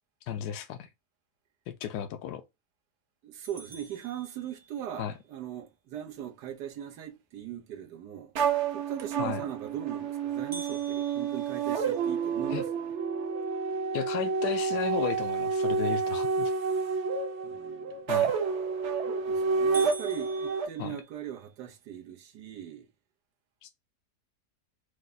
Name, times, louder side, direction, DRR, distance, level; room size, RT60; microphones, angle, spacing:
voice 1, 0.3-0.9 1.7-2.4 5.0-5.1 9.2-9.4 12.5-12.6 13.9-16.5 18.1-18.3 20.8-21.0 23.6-23.7, left 9 dB, 80° left, 1.1 m, -34 dB
voice 2, 3.2-8.3 8.7-12.9 17.4-18.0 19.0-22.9, right 10 dB, 85° right, 1.4 m, -40 dB
sound 1, 3.4-5.0 10.5-12.7 13.2-13.3 13.8-13.9 14.5-14.9 18.5-18.9 19.3-19.4 19.7-21.5, right 3 dB, 35° right, 0.4 m, -46 dB
sound 2, 8.3-20.7, right 5 dB, 55° right, 0.9 m, -29 dB
4.8 x 2.2 x 3.8 m
omnidirectional pair, 1.7 m